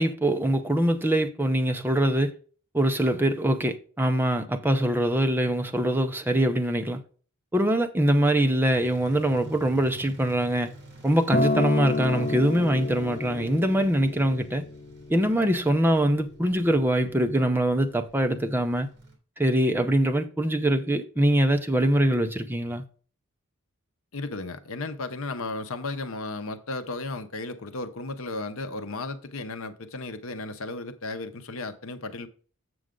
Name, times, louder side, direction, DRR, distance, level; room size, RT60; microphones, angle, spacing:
voice 1, 0.0-2.3 2.7-7.0 7.5-10.7 11.0-14.6 15.1-18.9 19.4-22.8, right 1 dB, 10° right, 0.6 m, -23 dB
sound 1, 8.7-19.2, right 2 dB, 50° right, 2.5 m, -47 dB
Acoustic guitar, 11.3-15.6 16.5-16.6, left 3 dB, 35° left, 0.4 m, -30 dB
voice 2, 24.1-32.3, left 2 dB, 65° left, 0.8 m, -34 dB
7.7 x 6.3 x 3.8 m
head